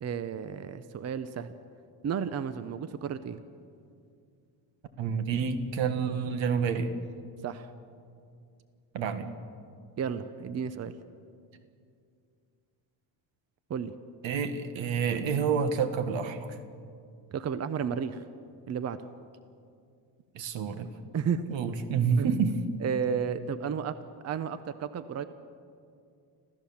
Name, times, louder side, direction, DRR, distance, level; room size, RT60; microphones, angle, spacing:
voice 1, 0.0-1.5 2.0-3.4 7.4-7.7 10.0-10.9 13.7-13.9 17.3-18.2 18.7-19.0 21.1-21.5 22.2-22.4 22.8-23.9 24.2-25.2, right 7 dB, 35° right, 12 dB, 0.7 m, -32 dB
voice 2, 5.0-6.9 8.9-9.3 14.2-16.6 20.4-20.9 21.5-22.5, right 6 dB, 75° right, 9 dB, 1.8 m, -28 dB
27.0 x 15.5 x 7.2 m, 2.4 s
cardioid pair, 145°, 45 cm